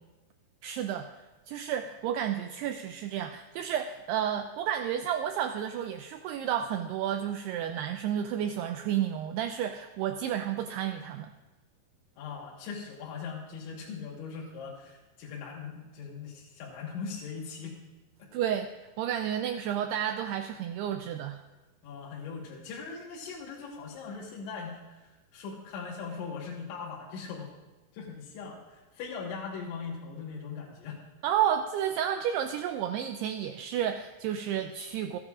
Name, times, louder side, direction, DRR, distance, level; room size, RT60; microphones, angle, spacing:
voice 1, 0.6-1.1 1.5-11.3 18.3-18.7 19.0-21.4 31.2-35.2, right 10 dB, 85° right, 6 dB, 2.3 m, -31 dB
voice 2, 12.2-17.7 18.2-18.3 21.8-25.1 25.3-27.5 27.9-31.0, left 5 dB, 80° left, -4 dB, 3.9 m, -40 dB
29.5 x 10.0 x 2.5 m, 1.2 s
omnidirectional pair, 5.3 m